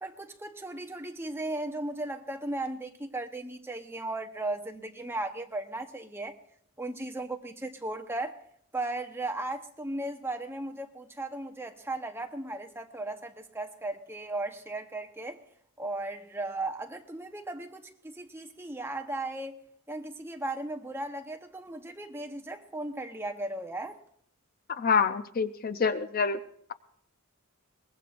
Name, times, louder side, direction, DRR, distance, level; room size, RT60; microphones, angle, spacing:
voice 1, 0.0-6.3 6.8-8.3 8.7-15.4 15.8-19.6 19.9-24.0, right 2 dB, 10° right, 0.9 m, -36 dB
voice 2, 24.7-26.4, left 5 dB, 40° left, 0.5 m, -26 dB
22.5 x 20.5 x 2.5 m
head